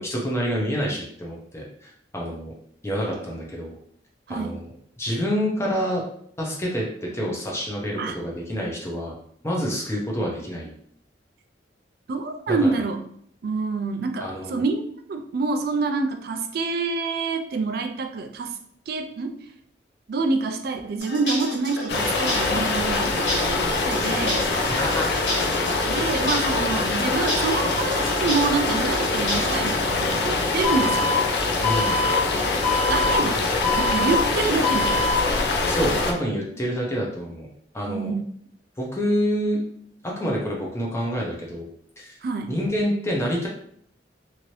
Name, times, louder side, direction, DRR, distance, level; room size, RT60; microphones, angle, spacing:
voice 1, 0.0-2.5 2.8-3.7 4.3-4.7 5.0-6.0 6.4-9.1 9.4-10.7 12.5-12.8 14.2-14.6 24.7-25.1 31.6-32.0 35.7-37.5 37.7-38.1 38.8-39.6 40.0-41.7 42.0-42.2 42.5-43.5, equal, 15° left, -3 dB, 0.6 m, -27 dB
voice 2, 12.1-13.0 13.4-14.8 15.1-18.5 18.9-19.3 20.1-24.5 25.9-31.1 32.9-33.4 33.8-35.1 37.9-38.2 42.2-42.5, right 4 dB, 55° right, 6 dB, 0.4 m, -27 dB
sound 1, 21.0-29.8, left 1 dB, 80° left, 1.4 m, -32 dB
sound 2, 21.9-36.1, left 3 dB, 65° left, 0.4 m, -24 dB
Alarm, 30.6-31.1 31.6-32.1 32.6-33.1 33.6-34.1 34.6-35.1, left 3 dB, 40° left, 0.9 m, -24 dB
2.8 x 2.6 x 3.0 m, 0.64 s
head